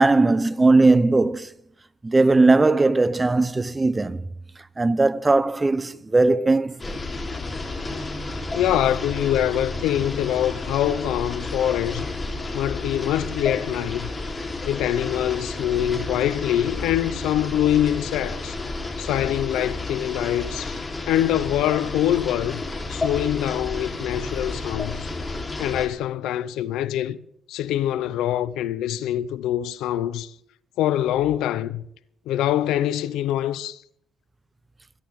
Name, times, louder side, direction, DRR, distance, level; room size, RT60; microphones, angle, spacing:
voice 1, 0.0-1.5 2.0-4.3 4.8-7.0, right 3 dB, 20° right, 0.8 m, -19 dB
sound 1, 6.8-25.9, left 2 dB, 25° left, 3.5 m, -31 dB
voice 2, 8.5-12.1 12.5-14.1 14.6-18.6 19.0-20.8 21.1-22.6 22.9-25.1 25.6-27.2 27.5-30.3 30.8-31.8 32.3-33.8, left 12 dB, 90° left, 0.6 m, -24 dB
23.0 x 11.5 x 3.6 m
cardioid pair, 90°, 0 cm